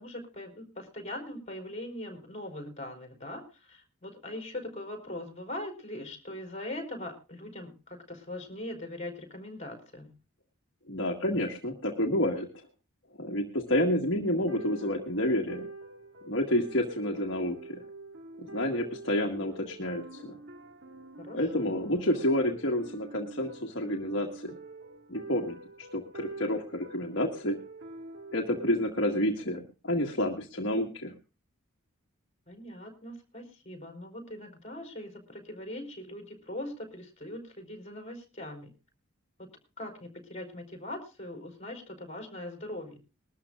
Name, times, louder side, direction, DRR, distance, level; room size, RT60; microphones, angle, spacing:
voice 1, 0.0-10.2 21.2-21.8 32.5-38.7 39.4-39.5 39.8-43.0, left 1 dB, 30° left, 4 dB, 4.3 m, -41 dB
voice 2, 10.9-12.5 13.2-15.7 16.3-17.8 18.4-20.4 21.3-24.5 25.1-27.6 28.3-31.1, left 1 dB, 55° left, 1 dB, 1.8 m, -29 dB
sound 1, 14.2-28.7, right 2 dB, 55° right, 2.0 m, -46 dB
21.0 x 13.0 x 2.5 m, 0.32 s
head